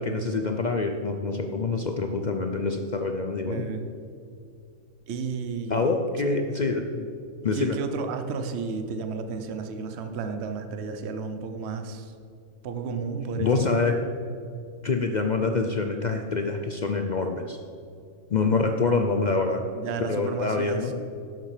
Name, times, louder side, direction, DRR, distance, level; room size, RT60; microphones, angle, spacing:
voice 1, 0.0-3.6 5.7-7.1 7.4-7.8 13.4-14.0 14.8-17.6 18.3-19.6 20.1-20.9, left 3 dB, 60° left, 5 dB, 0.4 m, -26 dB
voice 2, 3.4-3.9 5.1-5.9 6.2-6.4 7.5-12.1 12.6-13.7 19.7-20.9, right 5 dB, 55° right, 7 dB, 1.0 m, -32 dB
11.0 x 7.4 x 4.9 m, 2.5 s
omnidirectional pair, 1.5 m